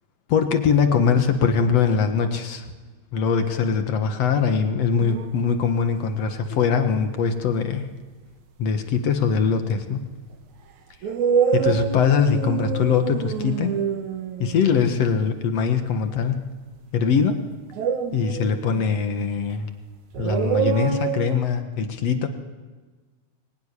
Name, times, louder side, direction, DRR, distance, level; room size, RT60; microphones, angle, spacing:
voice 1, 0.3-2.6 3.1-7.9 8.6-10.1 11.5-13.8 14.4-16.5 16.9-17.4 18.1-19.7 20.2-22.3, left 6 dB, 70° left, 7 dB, 1.5 m, -22 dB
sound 1, 5.0-5.4 6.3-6.8 9.8-9.9 11.0-15.0 17.7-19.0 20.1-21.4, right 7 dB, 60° right, 2.2 m, -26 dB
24.5 x 21.0 x 9.9 m, 1.4 s
omnidirectional pair, 5.0 m